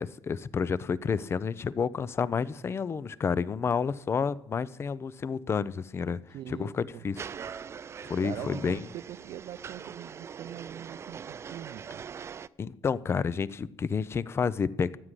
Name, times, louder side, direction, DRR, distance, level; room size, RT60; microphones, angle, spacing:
voice 1, 0.0-6.2 6.5-7.2 8.1-8.8 12.6-15.0, left 6 dB, 30° left, 0.5 m, -30 dB
voice 2, 6.3-7.1 8.2-12.0, right 12 dB, 70° right, 0.7 m, -43 dB
sound 1, 7.2-12.5, right 7 dB, 35° right, 0.4 m, -42 dB
15.0 x 7.6 x 9.8 m
cardioid pair, 130°, 8 cm